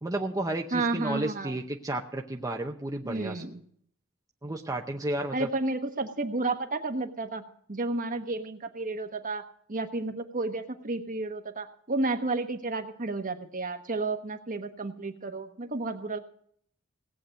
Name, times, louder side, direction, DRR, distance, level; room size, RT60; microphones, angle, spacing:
voice 1, 0.0-3.4 4.4-5.5, right 1 dB, 15° right, 1 dB, 0.8 m, -32 dB
voice 2, 0.7-1.6 3.0-3.6 5.3-16.2, right 2 dB, 40° right, 7 dB, 1.2 m, -32 dB
17.5 x 8.6 x 6.4 m, 0.63 s
head